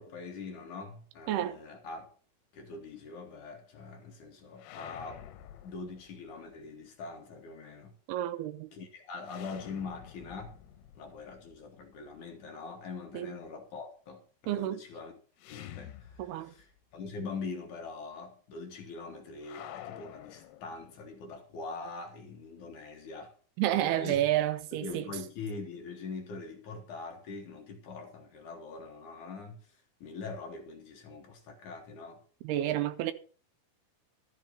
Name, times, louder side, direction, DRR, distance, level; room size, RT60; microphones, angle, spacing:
voice 1, 0.0-2.1 2.5-5.3 5.6-8.0 8.7-10.6 11.0-15.1 15.5-23.3 23.7-24.2 24.7-32.2, left 4 dB, 60° left, 2.5 m, -43 dB
voice 2, 1.3-1.6 8.1-8.7 13.1-13.3 14.5-14.8 16.2-16.5 23.6-25.1 32.4-33.1, right 13 dB, 90° right, 2.8 m, -30 dB
sound 1, 4.6-6.5 9.2-12.2 15.4-16.8 17.1-17.2 19.4-21.2, left 11 dB, 85° left, 2.9 m, -49 dB
13.0 x 6.2 x 6.6 m
omnidirectional pair, 4.6 m